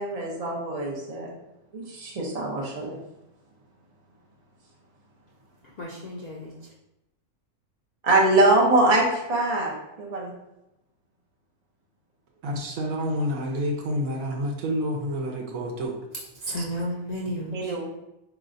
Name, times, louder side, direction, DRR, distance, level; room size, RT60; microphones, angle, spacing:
voice 1, 0.0-1.3 1.7-3.0 8.0-9.7 10.0-10.3 17.5-17.9, right 2 dB, 35° right, -3 dB, 0.7 m, -23 dB
voice 2, 5.6-6.7 16.3-17.7, equal, 85° left, -3 dB, 0.3 m, -33 dB
voice 3, 12.4-16.0, equal, 75° right, 1 dB, 1.2 m, -28 dB
4.4 x 3.0 x 2.6 m, 0.90 s
omnidirectional pair, 1.5 m